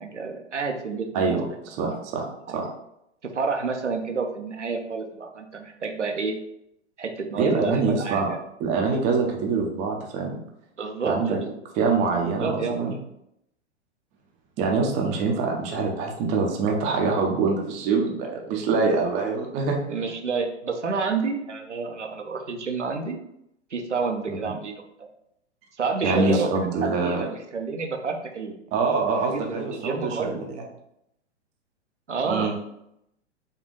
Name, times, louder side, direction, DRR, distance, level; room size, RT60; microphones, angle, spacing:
voice 1, 0.0-1.4 1.8-1.9 2.5-2.7 3.2-6.4 7.0-8.4 10.8-12.8 19.9-23.2 23.7-24.8 25.8-26.5 26.8-28.6 29.3-30.4 32.1-32.5, right 4 dB, 85° right, 3 dB, 0.6 m, -29 dB
voice 2, 1.1-2.3 2.5-2.7 7.4-8.3 8.6-10.4 11.0-11.4 11.8-12.9 14.6-19.8 24.3-24.5 26.0-27.3 28.7-30.4 32.2-32.5, right 4 dB, 20° right, 0 dB, 0.5 m, -24 dB
4.3 x 2.3 x 3.1 m, 0.79 s
figure-of-eight pair, 105°, 35 cm